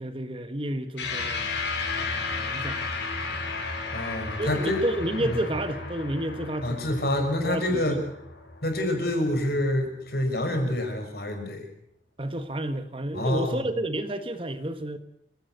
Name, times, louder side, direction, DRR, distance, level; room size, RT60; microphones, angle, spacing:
voice 1, 0.0-1.5 2.0-2.8 4.4-6.9 7.2-8.0 12.2-15.0, right 1 dB, 30° right, 9 dB, 1.3 m, -31 dB
sound 1, 1.0-9.6, left 3 dB, 70° left, 6.0 m, -34 dB
voice 2, 3.9-4.8 5.2-5.4 6.6-8.0 8.6-11.7 13.1-13.7, left 1 dB, 55° left, 5 dB, 5.9 m, -27 dB
28.0 x 16.5 x 8.1 m, 0.70 s
head